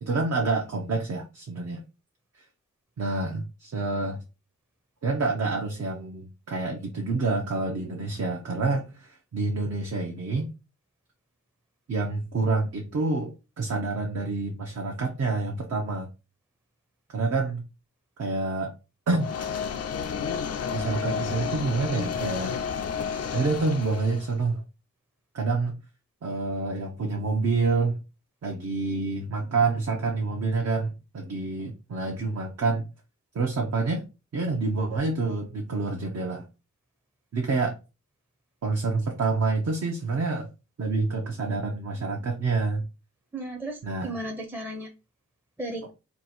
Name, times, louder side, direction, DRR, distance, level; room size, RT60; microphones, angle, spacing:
voice 1, 0.0-1.8 3.0-4.2 5.0-10.5 11.9-16.1 17.1-17.6 18.2-18.7 19.1-19.3 20.7-22.6 23.3-24.6 25.3-25.8 26.2-28.0 28.4-32.9 33.3-34.0 34.3-36.5 37.3-37.8 38.6-40.5 40.8-42.8 43.8-44.1, right 3 dB, 60° right, 1 dB, 0.7 m, -27 dB
sound 1, 19.2-24.4, left 6 dB, 55° left, 0.5 m, -31 dB
voice 2, 43.3-44.9 45.6-45.9, right 1 dB, 5° right, 3 dB, 0.6 m, -35 dB
2.8 x 2.3 x 4.1 m, 0.29 s
wide cardioid pair, 90°, 30 cm